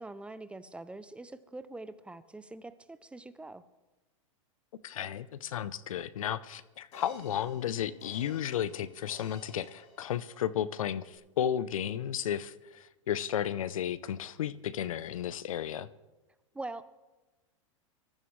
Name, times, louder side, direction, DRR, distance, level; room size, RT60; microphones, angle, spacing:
voice 1, 0.0-3.6 16.5-16.8, right 2 dB, 5° right, 14 dB, 0.5 m, -44 dB
voice 2, 4.8-15.9, left 10 dB, 85° left, 18 dB, 0.6 m, -33 dB
sound 1, 6.9-10.7 11.1-11.2, left 2 dB, 40° left, 4.9 m, -55 dB
24.0 x 14.5 x 3.2 m, 1.1 s
hypercardioid pair, 125°, 17 cm